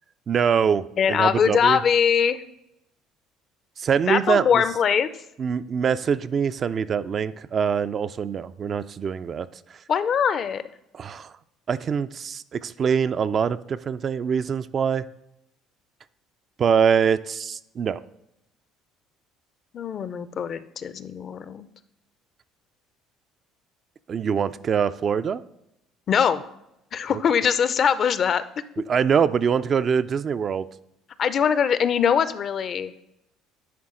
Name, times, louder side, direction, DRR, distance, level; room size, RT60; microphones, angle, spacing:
voice 1, 0.3-1.8 3.8-4.6 5.4-9.5 10.9-11.3 11.7-15.0 16.6-18.0 24.1-25.4 28.9-30.7, right 7 dB, 45° right, 13 dB, 0.3 m, -24 dB
voice 2, 1.0-2.4 4.1-5.1 9.9-10.6 19.7-21.7 26.1-26.4 26.9-28.4 31.2-32.9, left 7 dB, 50° left, 14 dB, 0.4 m, -22 dB
10.5 x 4.0 x 3.7 m, 0.84 s
supercardioid pair, 85°, 0 cm